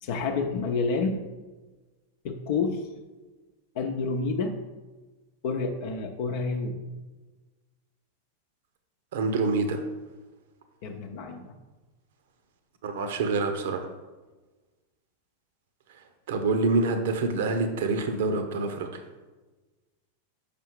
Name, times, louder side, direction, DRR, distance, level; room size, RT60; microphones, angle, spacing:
voice 1, 0.0-1.2 2.2-2.9 3.7-4.6 5.4-6.8 10.8-11.5, left 4 dB, 50° left, 4 dB, 0.7 m, -29 dB
voice 2, 9.1-9.8 12.8-13.9 15.9-19.0, right 3 dB, 55° right, 7 dB, 0.9 m, -27 dB
6.8 x 5.5 x 4.6 m, 1.2 s
figure-of-eight pair, 90°, 0 cm